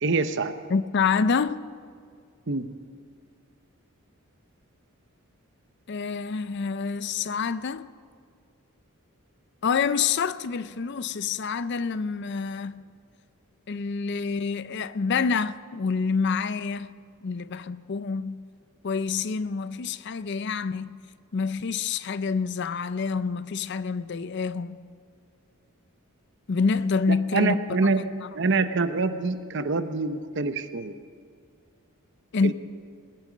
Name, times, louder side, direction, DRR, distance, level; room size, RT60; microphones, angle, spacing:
voice 1, 0.0-0.5 2.5-2.7 27.3-28.0 28.3-30.9 32.4-32.5, right 3 dB, 55° right, 0.8 m, -25 dB
voice 2, 0.7-1.6 5.9-7.9 9.6-12.8 13.7-16.9 17.2-18.4 18.8-21.0 21.3-24.8 26.5-27.6 28.0-28.3 32.3-32.5, left 5 dB, 50° left, 0.5 m, -27 dB
21.0 x 10.5 x 6.2 m
head